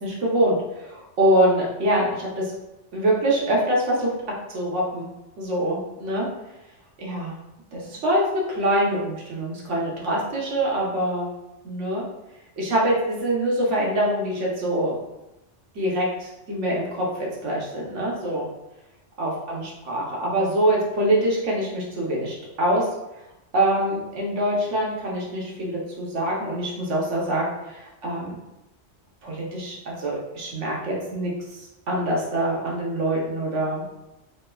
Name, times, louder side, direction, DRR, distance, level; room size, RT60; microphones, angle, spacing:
voice 1, 0.0-2.5 2.9-4.1 4.5-5.1 5.4-6.3 7.0-7.4 7.7-11.3 11.6-12.0 12.6-15.0 15.7-18.5 19.2-22.9 23.5-28.4 29.2-34.0, right 1 dB, 85° right, -3 dB, 1.2 m, -24 dB
3.2 x 3.0 x 2.3 m, 0.94 s
omnidirectional pair, 1.2 m